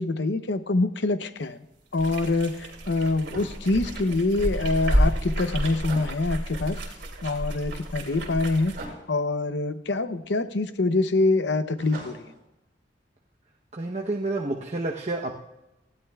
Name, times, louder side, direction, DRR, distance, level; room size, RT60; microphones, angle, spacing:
voice 1, 0.0-1.6 1.9-6.8 7.2-8.8 9.1-12.3, left 2 dB, 70° left, 11 dB, 0.8 m, -25 dB
sound 1, 1.9-8.9, equal, 75° right, 3.1 m, -30 dB
sound 2, 3.3-4.0 5.9-6.2 8.7-9.1 11.8-12.4, right 2 dB, 55° right, 5.7 m, -40 dB
voice 2, 13.7-15.3, right 2 dB, 40° right, 0 dB, 0.9 m, -29 dB
19.0 x 15.5 x 2.4 m, 0.95 s
head